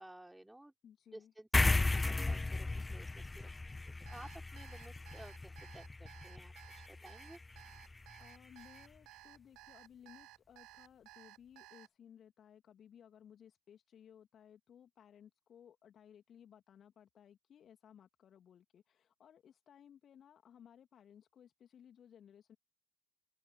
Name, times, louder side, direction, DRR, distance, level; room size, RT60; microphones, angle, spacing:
voice 1, 0.0-0.7 1.1-1.5 1.9-3.5 3.8-6.5 6.9-7.4, right 1 dB, 5° right, 4.5 m, -54 dB
voice 2, 0.8-1.3 7.8-22.6, left 9 dB, 35° left, 2.4 m, -60 dB
sound 1, 1.5-8.3, left 3 dB, 15° left, 0.7 m, -36 dB
Alarm, 4.1-11.9, right 18 dB, 50° right, 2.5 m, -57 dB
open air
figure-of-eight pair, 65°, 0 cm